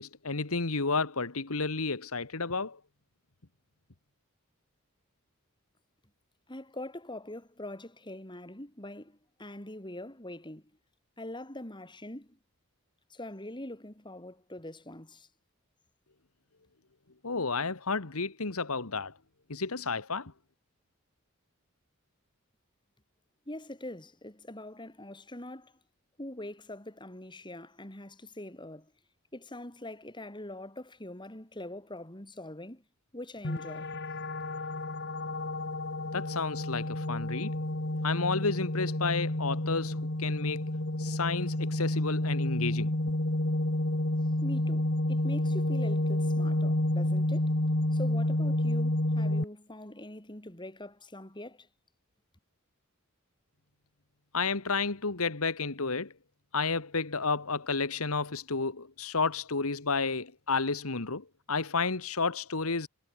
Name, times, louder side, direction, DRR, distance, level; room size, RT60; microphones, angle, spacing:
voice 1, 0.0-2.8 17.2-19.1 19.5-20.3 36.1-37.5 38.0-40.7 41.0-42.9 54.3-56.1 56.5-62.9, left 4 dB, 75° left, 1.8 m, -31 dB
voice 2, 6.5-10.6 11.2-12.4 13.1-15.3 23.5-25.7 26.2-28.9 29.3-32.8 33.1-33.9 44.4-47.6 47.9-51.7, left 1 dB, 20° left, 4.3 m, -43 dB
sound 1, 33.4-49.4, left 1 dB, 55° left, 2.1 m, -30 dB
head